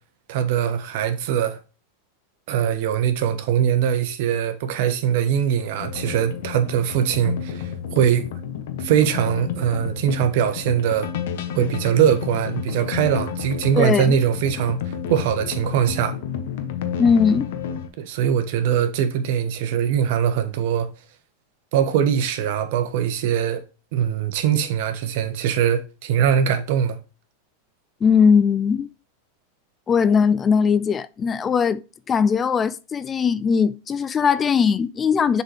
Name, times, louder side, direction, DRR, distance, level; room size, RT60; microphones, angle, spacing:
voice 1, 0.3-1.6 2.5-8.2 8.8-11.1 11.5-16.1 18.0-20.9 21.7-23.6 23.9-27.0, right 9 dB, 65° right, 1.2 m, -22 dB
sound 1, 5.8-17.9, left 8 dB, 70° left, 1.1 m, -31 dB
voice 2, 13.8-14.1 17.0-17.5 28.0-28.9 29.9-31.8 32.1-35.4, left 6 dB, 25° left, 0.4 m, -19 dB
7.2 x 4.1 x 3.4 m
hypercardioid pair, 110°, 0 cm